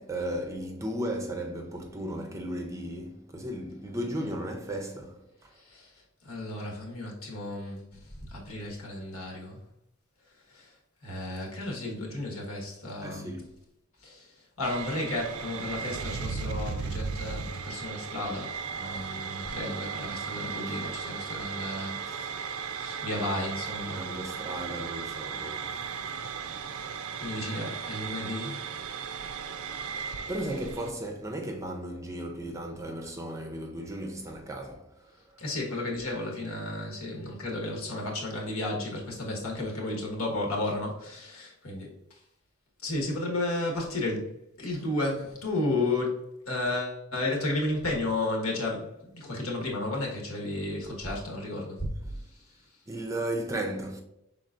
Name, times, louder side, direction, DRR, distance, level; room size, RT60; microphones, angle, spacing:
voice 1, 0.0-5.2 13.0-13.5 20.7-20.8 23.2-23.3 23.9-25.8 30.0-34.8 35.3-35.4 52.0-52.1 52.9-54.0, right 1 dB, 15° right, 0.5 m, -35 dB
voice 2, 5.5-9.6 10.3-10.8 11.0-13.4 14.0-24.2 26.3-26.9 27.2-28.8 35.4-42.2 42.8-51.9 52.2-52.8, left 2 dB, 85° left, 1.3 m, -33 dB
sound 1, 14.6-30.9, right 6 dB, 80° right, 0.4 m, -36 dB
5.5 x 3.9 x 2.5 m
head